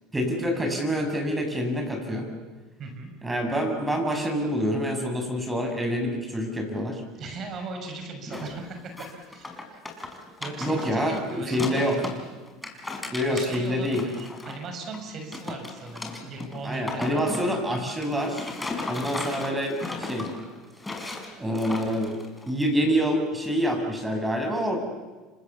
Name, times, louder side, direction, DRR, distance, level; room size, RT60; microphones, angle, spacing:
voice 1, 0.1-2.3 3.2-7.0 8.3-8.4 10.6-12.0 13.1-14.0 16.6-18.5 18.9-20.3 21.4-22.1 22.5-24.8, equal, 10° right, 4 dB, 7.4 m, -26 dB
voice 2, 2.8-3.1 7.2-9.8 10.4-12.1 13.3-17.3, right 3 dB, 45° right, 5 dB, 6.1 m, -38 dB
sound 1, 8.3-8.6 8.9-12.2 12.5-15.0 15.3-22.6, left 2 dB, 10° left, 5.4 m, -36 dB
29.0 x 26.0 x 7.1 m, 1.3 s
supercardioid pair, 100°, 0 cm